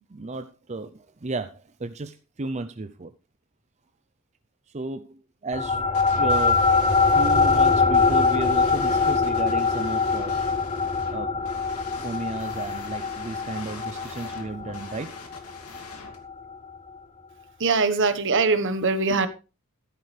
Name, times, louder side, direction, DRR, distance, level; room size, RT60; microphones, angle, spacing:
voice 1, 0.1-3.1 4.7-6.6 7.0-10.3 11.1-11.3 12.0-15.2, right 2 dB, 30° right, 0.6 m, -33 dB
sound 1, 5.5-16.3, left 4 dB, 25° left, 0.7 m, -23 dB
sound 2, 5.9-16.2, left 4 dB, 85° left, 2.7 m, -44 dB
voice 2, 17.6-19.3, right 4 dB, 60° right, 1.3 m, -22 dB
13.5 x 11.5 x 3.3 m
head